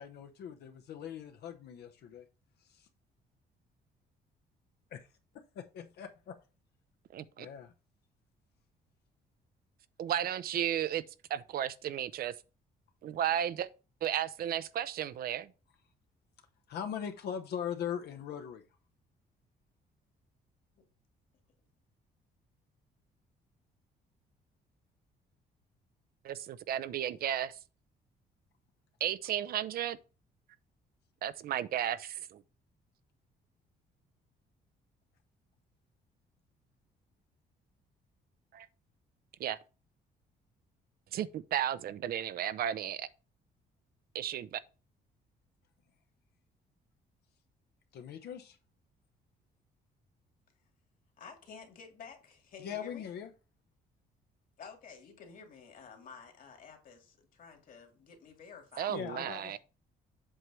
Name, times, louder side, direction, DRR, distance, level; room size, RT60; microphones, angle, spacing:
voice 1, 0.0-2.2 2.7-2.9 4.9-5.0 5.3-6.4 7.4-7.7 16.7-18.6 47.9-48.6 52.6-53.3 58.9-59.6, left 8 dB, 75° left, 0.9 m, -40 dB
voice 2, 7.1-7.5 10.0-11.0 11.3-12.3 13.0-13.7 14.0-15.5 26.2-27.6 29.0-30.0 31.2-32.4 38.5-38.7 39.4-39.6 41.1-43.1 44.1-44.6 58.8-59.6, right 10 dB, 65° right, 0.5 m, -34 dB
voice 3, 51.2-53.1 54.6-59.0, left 6 dB, 55° left, 2.3 m, -51 dB
7.9 x 3.2 x 6.1 m
cardioid pair, 120°, 17 cm